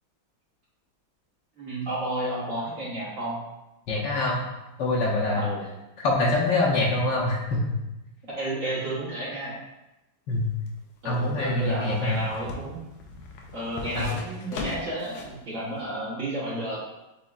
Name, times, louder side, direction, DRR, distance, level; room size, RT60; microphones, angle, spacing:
voice 1, 1.6-3.4 5.3-5.7 8.3-9.6 11.0-12.8 13.5-16.8, right 1 dB, 45° right, -7 dB, 1.4 m, -32 dB
voice 2, 3.9-4.4 4.8-5.4 6.0-7.8 10.3-10.5 11.0-12.2 13.9-14.1, left 2 dB, 70° left, -3 dB, 1.3 m, -25 dB
sound 1, 10.3-15.4 15.8-15.9, left 3 dB, 85° left, 1.5 m, -39 dB
7.2 x 3.1 x 2.4 m, 0.98 s
omnidirectional pair, 2.2 m